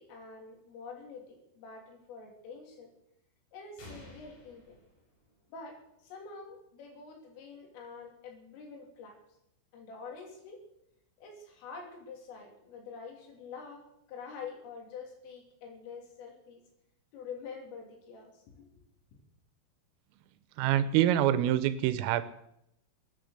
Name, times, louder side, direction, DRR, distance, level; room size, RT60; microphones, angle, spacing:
voice 1, 0.0-2.9 3.5-4.8 5.5-9.2 9.7-10.6 11.2-16.6 17.1-18.7, left 5 dB, 75° left, 1 dB, 5.7 m, -46 dB
sound 1, 3.8-5.7, left 1 dB, 50° left, 6.1 m, -52 dB
voice 2, 20.6-22.2, right 12 dB, 85° right, 13 dB, 3.4 m, -25 dB
21.5 x 10.0 x 6.6 m, 0.81 s
omnidirectional pair, 5.9 m